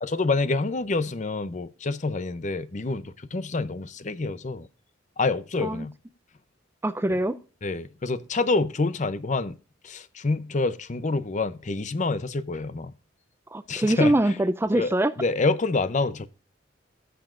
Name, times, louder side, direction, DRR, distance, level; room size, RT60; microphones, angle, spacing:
voice 1, 0.0-4.7 5.2-5.9 7.6-9.6 9.8-12.9 13.7-14.1 14.8-14.9 15.2-16.3, left 3 dB, 40° left, 0.6 m, -27 dB
voice 2, 6.8-7.4 13.5-15.1, right 1 dB, 10° right, 0.4 m, -23 dB
16.5 x 7.0 x 2.5 m
head